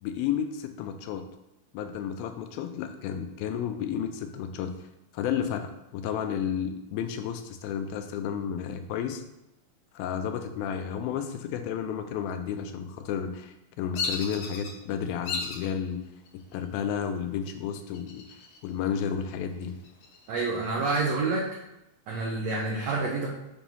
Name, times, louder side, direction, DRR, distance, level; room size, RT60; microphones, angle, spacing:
voice 1, 0.0-1.2 1.7-4.7 5.1-9.2 9.9-16.0 16.5-18.2 18.6-19.8, left 8 dB, 85° left, 7 dB, 2.4 m, -32 dB
Bird vocalization bird call bird song, 13.9-14.7 15.2-15.7 16.3-16.8 17.9-18.7 19.0-19.1 19.6-21.0, left 4 dB, 65° left, 2.2 m, -35 dB
voice 2, 20.3-21.5 22.1-23.3, right 3 dB, 85° right, -2 dB, 1.4 m, -28 dB
7.1 x 3.0 x 5.3 m, 0.92 s
omnidirectional pair, 4.2 m